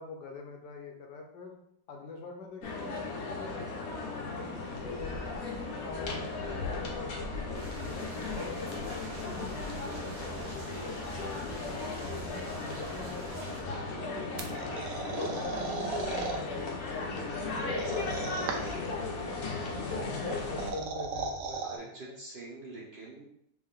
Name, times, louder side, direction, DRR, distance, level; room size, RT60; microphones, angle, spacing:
voice 1, 0.0-1.6 1.9-5.4 5.8-7.6 7.9-14.7 15.1-17.9 18.3-20.0 20.5-22.1, left 3 dB, 85° left, 2 dB, 1.4 m, -45 dB
sound 1, 2.6-20.7, left 3 dB, 60° left, 1.2 m, -36 dB
sound 2, 7.5-13.6, right 1 dB, 20° right, 0.8 m, -44 dB
voice 2, 13.9-14.3 17.6-18.6 19.9-20.1 21.6-23.2, right 2 dB, 50° right, -3 dB, 0.8 m, -46 dB
sound 3, 14.4-16.4 17.7-18.9 20.3-21.8, right 4 dB, 90° right, 1.3 m, -36 dB
3.5 x 3.4 x 3.7 m, 0.72 s
omnidirectional pair, 1.8 m